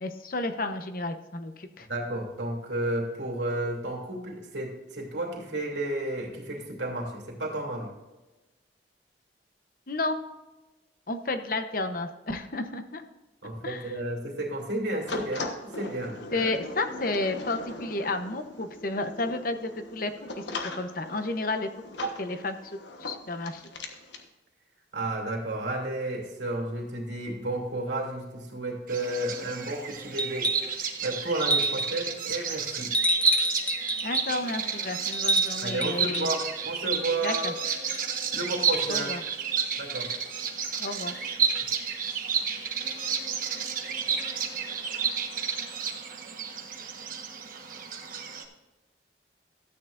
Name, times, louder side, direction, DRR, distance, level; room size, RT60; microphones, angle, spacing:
voice 1, 0.0-1.9 9.9-10.2 11.1-13.0 13.6-13.9 16.3-21.7 22.2-23.6 34.0-36.3 37.2-37.5 38.9-39.2 40.8-41.1, left 2 dB, 50° left, 8 dB, 0.9 m, -32 dB
voice 2, 1.9-7.9 13.4-16.5 22.0-22.1 24.9-32.9 35.6-37.5 38.3-39.1 39.8-40.1, right 1 dB, 85° right, -1 dB, 2.9 m, -32 dB
sound 1, 15.1-24.3, left 2 dB, 80° left, 1.3 m, -40 dB
Bird vocalization bird call bird song, 28.9-48.4, right 6 dB, 50° right, 1.2 m, -31 dB
sound 2, 30.2-30.8 31.4-32.0 32.9-34.3 35.1-36.3 37.9-38.0, right 1 dB, 5° left, 0.4 m, -27 dB
13.0 x 9.1 x 2.6 m, 1.1 s
head